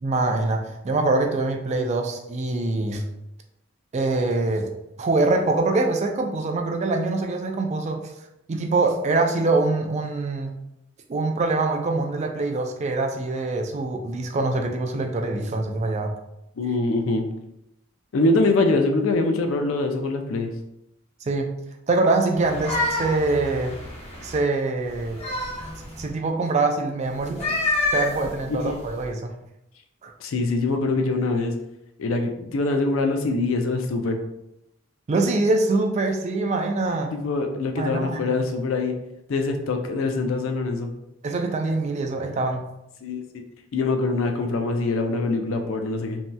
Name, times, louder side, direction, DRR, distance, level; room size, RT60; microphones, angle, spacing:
voice 1, 0.0-3.0 3.9-4.7 5.0-8.0 8.5-10.5 11.1-16.1 21.3-21.5 21.9-23.7 24.2-25.2 26.0-27.4 27.9-29.3 30.0-30.1 35.1-37.1 37.8-38.4 41.2-42.6, right 3 dB, 35° right, 3 dB, 0.3 m, -24 dB
voice 2, 16.6-17.2 18.1-20.5 28.5-28.8 30.2-31.5 32.0-34.2 37.1-38.9 39.3-40.9 43.0-43.2 43.7-46.2, left 3 dB, 70° left, 5 dB, 0.4 m, -24 dB
sound 1, 22.3-24.4 24.9-26.1 27.2-29.0, left 2 dB, 30° left, 0.8 m, -28 dB
3.1 x 2.7 x 2.2 m, 0.85 s
head